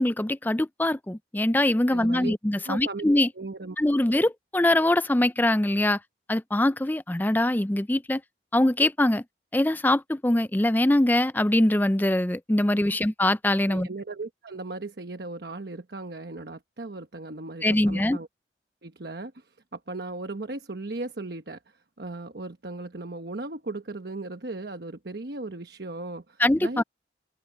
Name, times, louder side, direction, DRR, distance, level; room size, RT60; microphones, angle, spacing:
voice 1, 0.0-3.3 3.8-6.0 6.3-8.2 8.5-9.2 9.5-13.9 17.6-18.2 26.4-26.8, left 1 dB, 10° left, 0.4 m, -23 dB
voice 2, 1.9-2.3 2.7-3.1 3.3-3.8 13.7-18.3 18.8-26.8, right 2 dB, 65° right, 1.1 m, -37 dB
open air
head